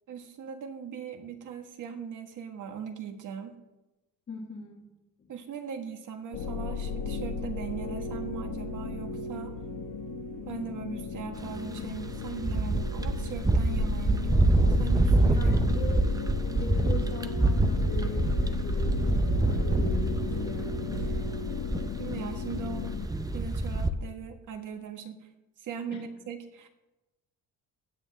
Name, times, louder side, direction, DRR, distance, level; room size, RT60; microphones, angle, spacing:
voice 1, 0.1-3.5 5.3-9.5 10.5-15.5 22.0-22.9 23.3-25.3 25.6-26.7, right 7 dB, 60° right, 5 dB, 1.6 m, -39 dB
voice 2, 4.3-4.8 15.4-16.1 16.5-21.3 25.9-26.1, left 4 dB, 30° left, -2 dB, 1.5 m, -41 dB
sound 1, 6.3-23.1, left 5 dB, 65° left, 1.2 m, -35 dB
sound 2, 11.4-23.9, right 2 dB, 10° right, 0.5 m, -26 dB
15.5 x 9.5 x 3.5 m, 1.0 s
cardioid pair, 130°, 35 cm